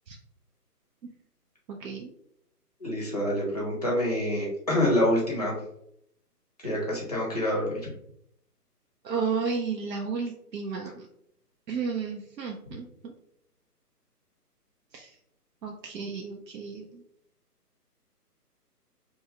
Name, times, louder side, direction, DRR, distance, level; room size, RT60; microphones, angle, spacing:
voice 1, 1.7-2.1 9.0-11.1 11.7-13.1 14.9-15.1 15.6-17.0, right 5 dB, 90° right, 1 dB, 0.6 m, -33 dB
voice 2, 2.8-5.5 6.6-7.7, left 1 dB, 25° left, -4 dB, 0.5 m, -26 dB
2.5 x 2.2 x 2.8 m, 0.73 s
figure-of-eight pair, 150°, 48 cm